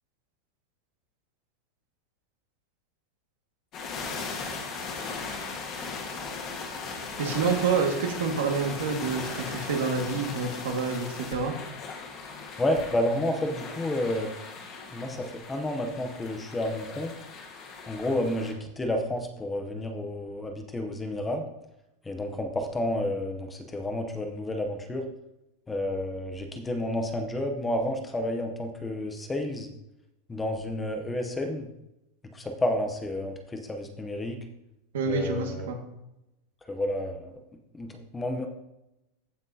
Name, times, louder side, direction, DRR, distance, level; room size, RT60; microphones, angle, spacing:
Montrose beach, 3.7-18.5, left 4 dB, 25° left, 1.4 m, -38 dB
voice 1, 7.2-11.5 34.9-35.8, right 5 dB, 85° right, 3 dB, 1.7 m, -28 dB
voice 2, 12.6-14.3 14.9-17.1 17.9-21.4 22.0-25.1 25.7-29.7 30.3-31.7 32.3-34.4 35.1-35.7 36.7-37.3 37.7-38.5, left 1 dB, 10° left, 4 dB, 0.7 m, -30 dB
15.0 x 5.9 x 2.8 m, 0.89 s
supercardioid pair, 180°, 0 cm